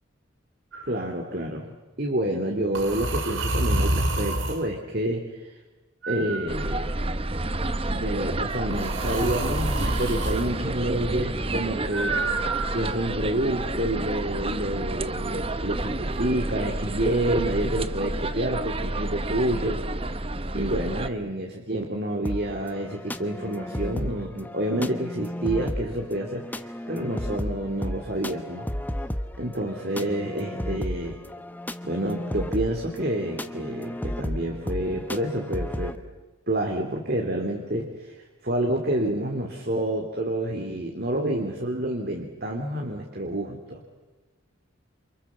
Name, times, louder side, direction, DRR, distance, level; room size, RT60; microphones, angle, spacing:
sound 1, 0.7-1.0 2.7-4.7 6.0-7.1 8.7-10.5 11.9-13.1, right 2 dB, 75° right, 4.2 m, -28 dB
voice 1, 0.9-1.7 2.0-5.6 6.1-7.0 7.9-12.2 12.7-19.8 20.5-28.7 29.4-31.2 31.8-35.9 36.5-43.8, right 1 dB, 50° right, 2 dB, 3.1 m, -28 dB
sound 2, 6.5-21.1, right 2 dB, 25° right, 1.0 m, -30 dB
sound 3, 22.2-36.0, equal, 10° left, 1.1 m, -34 dB
29.5 x 28.5 x 7.2 m, 1.2 s
head